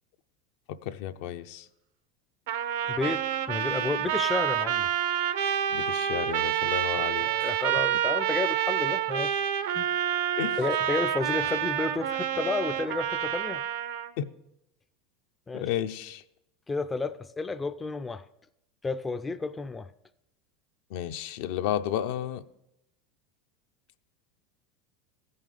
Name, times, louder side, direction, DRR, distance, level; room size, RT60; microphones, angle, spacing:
voice 1, 0.7-1.7 5.7-7.5 10.4-10.6 14.2-14.3 15.5-16.2 20.9-22.4, left 10 dB, 70° left, 0.5 m, -32 dB
Trumpet, 2.5-14.1, right 10 dB, 80° right, 0.7 m, -28 dB
voice 2, 2.9-4.9 7.2-9.4 9.7-9.9 10.6-13.6 15.5-15.7 16.7-18.2 18.8-19.9, left 3 dB, 15° left, 0.3 m, -31 dB
15.0 x 5.6 x 5.0 m
supercardioid pair, 130°, 0 cm